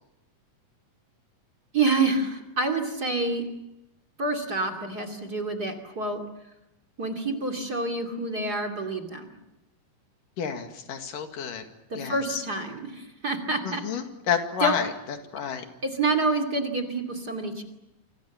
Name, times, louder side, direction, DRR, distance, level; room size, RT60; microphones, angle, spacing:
voice 1, 1.7-3.5 4.2-6.2 7.0-9.3 11.9-13.8 14.6-14.7 15.8-17.6, right 3 dB, 30° right, 4 dB, 2.7 m, -27 dB
voice 2, 10.4-11.6 12.0-12.4 13.6-15.7, left 7 dB, 75° left, 6 dB, 3.7 m, -30 dB
28.5 x 25.0 x 7.2 m, 0.92 s
omnidirectional pair, 3.8 m